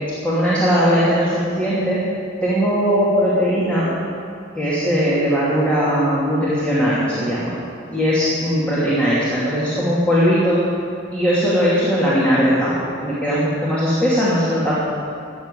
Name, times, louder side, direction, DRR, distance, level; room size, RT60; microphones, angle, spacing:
voice 1, 0.2-2.0 2.4-3.9 4.5-7.6 7.9-10.6 11.1-12.7 13.0-14.7, equal, 5° left, -10 dB, 2.7 m, -19 dB
15.0 x 7.3 x 9.2 m, 2.5 s
head